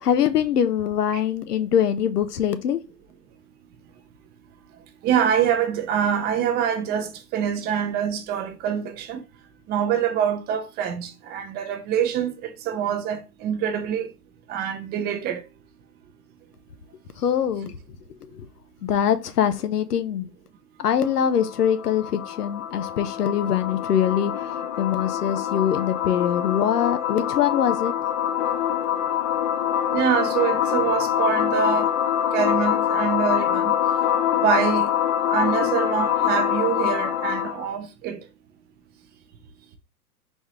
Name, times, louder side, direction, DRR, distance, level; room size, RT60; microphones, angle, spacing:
voice 1, 0.0-2.8 17.2-17.7 18.2-18.5 18.8-20.3 20.8-27.9, left 9 dB, 85° left, 0.8 m, -23 dB
voice 2, 5.0-9.2 9.7-14.1 14.5-15.4 29.9-31.9 32.3-33.7 34.4-34.9 35.3-38.2, right 8 dB, 20° right, 0.6 m, -25 dB
sound 1, 21.0-37.7, left 10 dB, 40° left, 0.5 m, -25 dB
4.2 x 3.6 x 3.1 m
hypercardioid pair, 120°, 45 cm